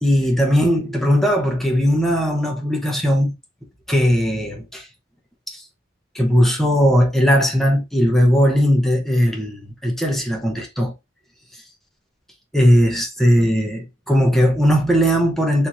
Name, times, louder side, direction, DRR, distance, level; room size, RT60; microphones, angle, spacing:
voice 1, 0.0-3.3 3.9-4.9 5.5-5.6 6.1-10.9 12.5-15.7, equal, ahead, 0.9 m, -18 dB
4.4 x 2.8 x 2.6 m
head